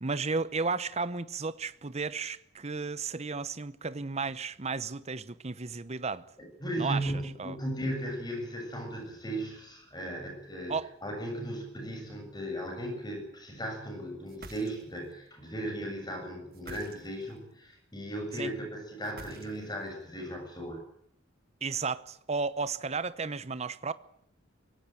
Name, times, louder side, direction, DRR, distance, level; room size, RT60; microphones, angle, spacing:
voice 1, 0.0-6.3 6.8-7.1 7.4-7.6 10.7-10.9 18.4-18.5 21.6-23.9, right 4 dB, 30° right, 0.9 m, -33 dB
voice 2, 6.4-10.8 11.0-20.8, right 1 dB, 20° left, 7.2 m, -36 dB
sound 1, 14.3-15.1 16.5-17.4 19.0-19.9, right 3 dB, 50° right, 1.8 m, -49 dB
24.5 x 17.5 x 9.0 m
head